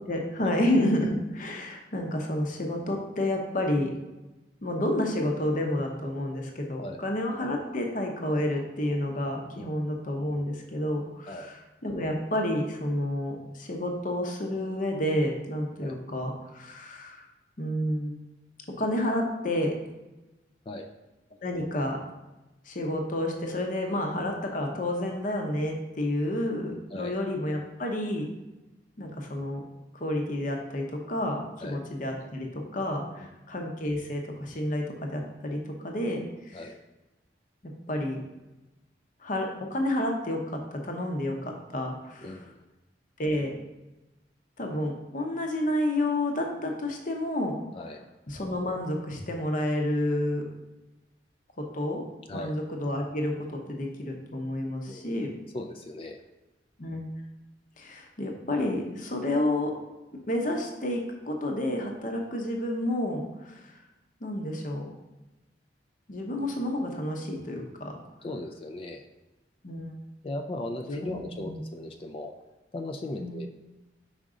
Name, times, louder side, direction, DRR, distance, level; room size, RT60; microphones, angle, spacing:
voice 1, 0.0-3.9 4.6-17.2 17.6-18.2 18.8-19.8 21.4-22.0 22.7-28.3 29.0-29.6 29.9-36.6 37.9-38.2 39.2-42.4 43.2-43.6 44.6-47.6 48.3-50.5 51.6-52.0 52.3-55.3 56.8-57.0 57.8-59.7 60.3-63.7 64.2-64.9 66.1-68.0 69.6-69.9 71.0-71.6 73.2-73.3, left 1 dB, 45° left, 2 dB, 0.8 m, -30 dB
voice 2, 42.2-42.6 47.7-48.1 52.3-52.5 54.9-55.2 55.5-56.2 68.2-69.1 70.2-72.3 72.7-73.5, left 1 dB, 30° left, 4 dB, 0.3 m, -37 dB
5.2 x 4.9 x 3.7 m, 1.0 s
head